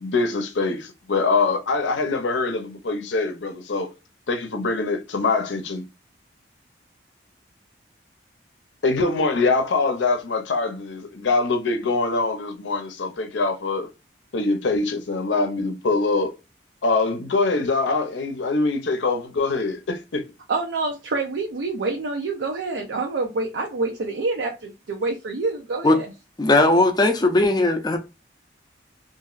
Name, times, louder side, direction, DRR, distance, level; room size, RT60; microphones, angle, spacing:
voice 1, 0.0-3.9 4.3-5.8 8.8-13.9 14.3-16.3 16.8-20.3, left 3 dB, 85° left, 0.6 m, -23 dB
voice 2, 20.5-26.1, right 3 dB, 80° right, 0.5 m, -27 dB
voice 3, 26.4-28.0, left 2 dB, 20° left, 0.4 m, -18 dB
2.9 x 2.5 x 2.4 m
head